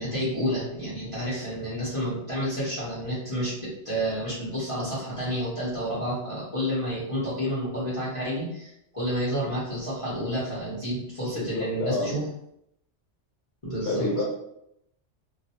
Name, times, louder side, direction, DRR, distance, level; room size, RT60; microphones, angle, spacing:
voice 1, 0.0-12.3 13.6-14.1, equal, 30° left, -10 dB, 0.8 m, -30 dB
voice 2, 11.3-12.1 13.8-14.2, left 2 dB, 65° left, -2 dB, 1.0 m, -28 dB
2.3 x 2.1 x 2.8 m, 0.78 s
omnidirectional pair, 1.2 m